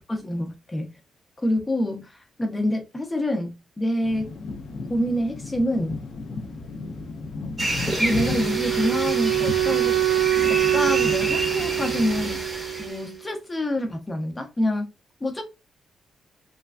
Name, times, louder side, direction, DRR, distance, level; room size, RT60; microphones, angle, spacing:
voice 1, 0.1-0.9 1.4-4.3 4.9-6.0 8.0-10.0 10.5-12.5 12.8-14.9 15.2-15.4, left 1 dB, 15° left, 0.6 m, -26 dB
sound 1, 4.0-12.3, left 3 dB, 55° left, 0.4 m, -35 dB
sound 2, 7.6-13.1, right 1 dB, 20° right, 0.8 m, -29 dB
Wind instrument woodwind instrument, 8.1-13.1, right 14 dB, 85° right, 0.3 m, -24 dB
3.2 x 2.2 x 2.3 m
cardioid pair, 130°, 0 cm